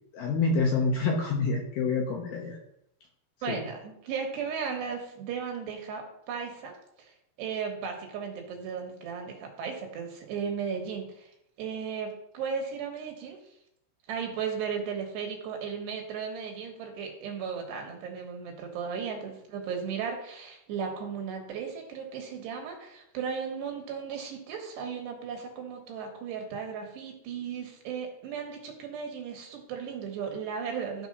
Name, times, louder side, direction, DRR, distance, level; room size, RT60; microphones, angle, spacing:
voice 1, 0.1-2.6 3.5-3.6, left 4 dB, 70° left, -1 dB, 2.4 m, -27 dB
voice 2, 3.4-11.3 11.6-13.4 14.1-31.1, right 6 dB, 70° right, 3 dB, 3.0 m, -36 dB
13.0 x 4.6 x 5.4 m, 0.77 s
omnidirectional pair, 5.6 m